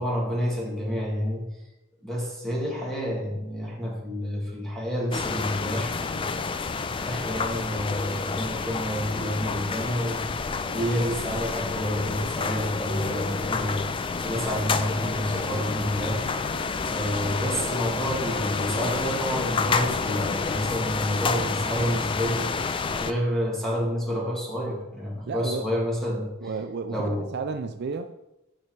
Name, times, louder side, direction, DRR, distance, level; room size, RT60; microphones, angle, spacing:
voice 1, 0.0-1.5 2.0-16.2 16.8-22.5 23.0-26.3 26.9-27.3, equal, 5° left, -3 dB, 2.0 m, -29 dB
sound 1, 5.1-23.1, left 4 dB, 25° left, 0.3 m, -29 dB
sound 2, 14.3-20.6, left 1 dB, 85° left, 1.4 m, -40 dB
voice 2, 25.3-25.7 26.4-28.2, right 4 dB, 50° right, 8 dB, 0.4 m, -32 dB
8.6 x 5.6 x 4.5 m, 0.96 s
head